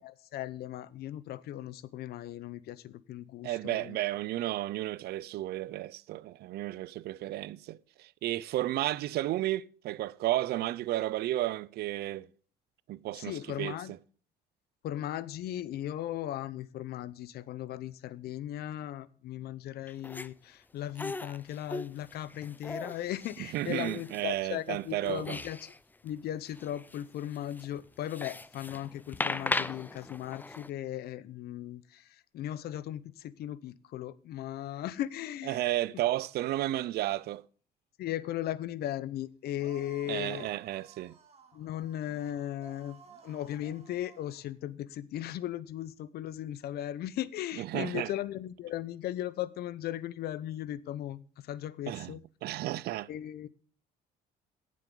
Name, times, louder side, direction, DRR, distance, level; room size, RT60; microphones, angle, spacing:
voice 1, 0.0-4.0 13.1-13.9 14.8-25.7 26.0-35.6 38.0-40.5 41.5-52.2 53.1-53.5, left 12 dB, 70° left, 0.8 m, -37 dB
voice 2, 3.4-12.3 12.9-13.8 23.4-25.4 35.5-37.4 40.1-41.1 47.6-48.1 51.9-52.2 52.4-53.1, right 15 dB, 70° right, 0.6 m, -33 dB
sound 1, 19.9-20.3 21.0-24.4 24.7-25.8 26.1-26.2 26.5-30.7, left 2 dB, 10° left, 0.5 m, -38 dB
sound 2, 39.6-44.5, right 5 dB, 35° right, 2.6 m, -56 dB
17.0 x 7.6 x 3.8 m
cardioid pair, 110°, 17 cm